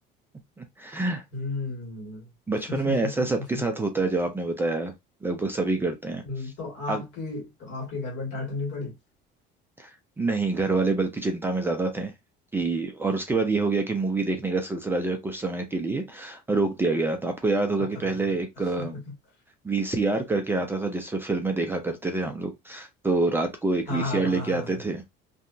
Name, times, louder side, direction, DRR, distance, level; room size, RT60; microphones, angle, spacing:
voice 1, 0.6-1.2 2.5-4.9 5.2-6.5 6.9-7.0 9.8-9.9 10.2-12.1 12.5-19.0 19.6-25.0, right 3 dB, 10° right, 0.3 m, -27 dB
voice 2, 1.3-2.3 2.7-3.1 3.5-3.6 6.2-8.9 17.9-18.4 18.8-19.0 23.9-24.8, left 3 dB, 65° left, 1.6 m, -33 dB
2.8 x 2.2 x 2.5 m
cardioid pair, 155°, 20 cm